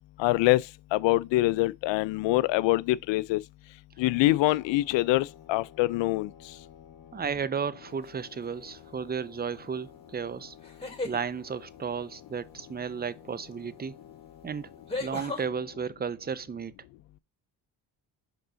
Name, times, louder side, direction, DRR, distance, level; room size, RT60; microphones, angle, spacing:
voice 1, 0.2-0.7 0.9-3.4 4.0-6.3, left 18 dB, 70° left, 0.6 m, -24 dB
sound 1, 4.0-15.9, left 9 dB, 50° left, 1.9 m, -53 dB
voice 2, 7.1-10.6 11.0-14.0 14.4-14.7 15.0-16.7, right 6 dB, 20° right, 0.5 m, -33 dB
sound 2, 8.0-8.4 10.6-11.2 13.5-13.6 14.9-15.4, left 2 dB, 10° left, 2.9 m, -35 dB
5.3 x 3.7 x 5.0 m
supercardioid pair, 75°, 45 cm